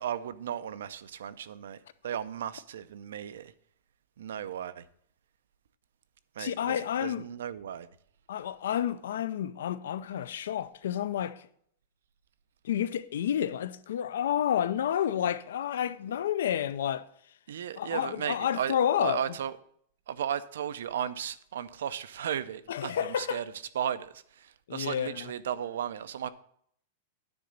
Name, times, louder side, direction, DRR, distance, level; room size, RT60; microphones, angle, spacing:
voice 1, 0.0-1.8 2.0-3.5 4.2-4.8 6.4-7.9 17.5-19.5 20.1-23.4 23.7-26.3, right 9 dB, 85° right, 0.5 m, -35 dB
voice 2, 6.4-7.3 8.3-11.4 12.6-17.1 17.8-19.4 22.7-23.4 24.7-25.3, left 10 dB, 75° left, 0.5 m, -30 dB
9.6 x 4.0 x 6.6 m
supercardioid pair, 175°, 0 cm